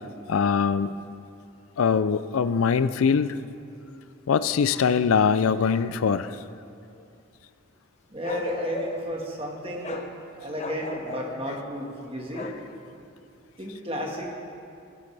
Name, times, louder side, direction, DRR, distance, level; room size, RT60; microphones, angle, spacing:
voice 1, 0.3-0.9 1.8-3.4 4.3-6.4, left 6 dB, 85° left, 13 dB, 0.4 m, -22 dB
voice 2, 8.1-10.1 10.4-12.5 13.6-14.3, equal, 25° right, 0 dB, 1.6 m, -33 dB
Bark, 8.2-9.1 9.8-10.1 10.6-11.3 12.3-12.6, left 2 dB, 35° left, 0.8 m, -34 dB
23.5 x 9.2 x 3.4 m, 2.6 s
head